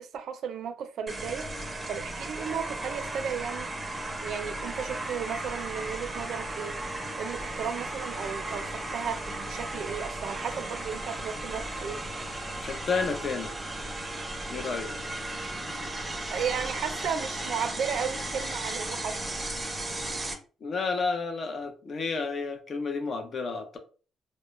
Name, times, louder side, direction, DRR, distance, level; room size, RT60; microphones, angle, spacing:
voice 1, 0.0-1.5 1.9-3.9 4.2-6.8 7.2-12.0 16.3-19.2, right 7 dB, 70° right, 0.4 m, -34 dB
sound 1, 1.1-20.3, right 2 dB, 15° right, 0.5 m, -35 dB
voice 2, 12.6-13.5 14.5-14.9 20.6-23.8, left 4 dB, 50° left, 0.5 m, -31 dB
2.2 x 2.0 x 3.0 m
cardioid pair, 90°, 0 cm